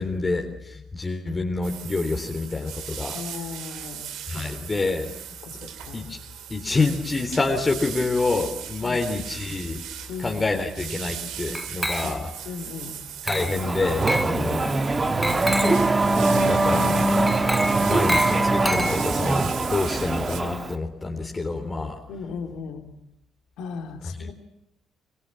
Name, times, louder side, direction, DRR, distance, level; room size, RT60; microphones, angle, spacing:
voice 1, 0.0-3.2 4.3-5.1 5.9-6.2 6.5-9.8 10.2-12.3 13.2-14.7 16.4-17.0 17.8-22.0 24.2-24.3, left 3 dB, 25° left, 2 dB, 3.6 m, -27 dB
sound 1, 1.6-20.4, right 9 dB, 65° right, 3.1 m, -38 dB
voice 2, 3.1-4.1 5.4-6.0 8.8-9.0 10.1-10.4 12.0-12.1 12.4-13.0 14.5-14.7 17.7-18.0 22.1-22.9 23.6-24.3, left 5 dB, 65° left, 5 dB, 3.5 m, -37 dB
Glass, 11.5-12.4 13.3-13.7 14.1-14.4 15.2-15.9 17.3-19.3, equal, ahead, 1.9 m, -29 dB
Race car auto racing / Accelerating revving vroom, 13.5-20.7, right 2 dB, 30° right, 2.4 m, -22 dB
25.0 x 23.5 x 7.5 m, 0.83 s
hypercardioid pair, 50°, 0 cm